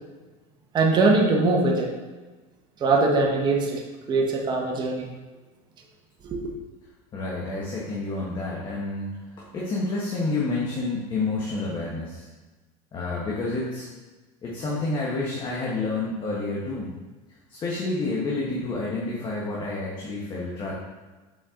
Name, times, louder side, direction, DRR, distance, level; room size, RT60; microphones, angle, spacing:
voice 1, 0.7-1.9 2.8-3.8 4.1-5.0 6.3-6.4, right 3 dB, 30° right, 0 dB, 1.1 m, -21 dB
voice 2, 7.1-9.1 9.4-12.3 12.9-13.9 14.4-16.9 17.5-20.7, left 3 dB, 30° left, -4 dB, 1.3 m, -29 dB
7.4 x 4.4 x 3.7 m, 1.3 s
supercardioid pair, 135°, 16 cm